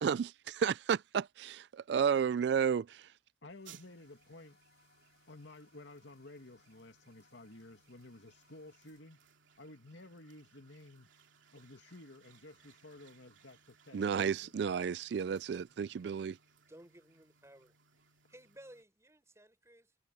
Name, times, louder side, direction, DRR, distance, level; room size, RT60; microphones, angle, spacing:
voice 1, 0.0-3.1 13.9-16.4, right 7 dB, 60° right, 0.3 m, -32 dB
voice 2, 3.4-4.6 5.3-9.2 9.6-11.1 11.5-14.5, left 2 dB, 75° left, 2.5 m, -53 dB
sound 1, 3.5-9.0, left 5 dB, 60° left, 5.9 m, -71 dB
sound 2, 3.6-18.8, right 7 dB, 85° right, 2.9 m, -65 dB
voice 3, 16.7-20.0, right 1 dB, 15° right, 4.9 m, -58 dB
head